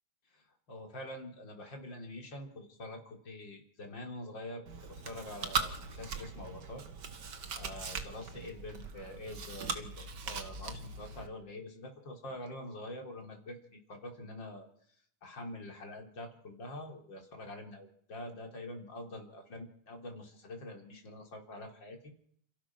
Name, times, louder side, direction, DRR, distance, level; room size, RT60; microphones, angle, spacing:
voice 1, 0.3-6.8 7.5-14.7 15.2-22.1, left 1 dB, 35° left, 3 dB, 4.1 m, -45 dB
Chewing mastication, 4.7-11.3, right 5 dB, 45° right, 1.6 m, -40 dB
28.5 x 15.5 x 6.2 m, 0.65 s
omnidirectional pair, 3.7 m